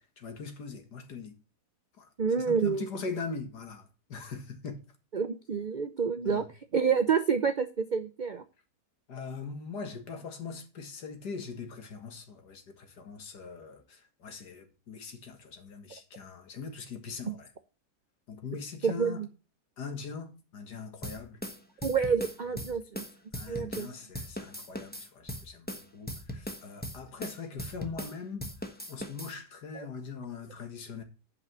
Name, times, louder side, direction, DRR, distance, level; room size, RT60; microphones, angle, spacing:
voice 1, 0.2-1.4 2.0-2.1 2.4-4.8 6.2-6.5 9.1-17.5 18.3-19.3 19.8-21.4 23.4-31.0, left 5 dB, 85° left, 2.2 m, -41 dB
voice 2, 2.2-2.9 5.1-6.5 6.7-8.4 17.3-17.4 18.8-19.3 21.8-23.0 23.5-23.9 29.8-29.9, right 6 dB, 85° right, 0.4 m, -28 dB
sound 1, 21.0-23.9 24.1-28.1 28.4-29.3, equal, 5° left, 1.0 m, -39 dB
8.3 x 5.5 x 7.3 m
omnidirectional pair, 1.7 m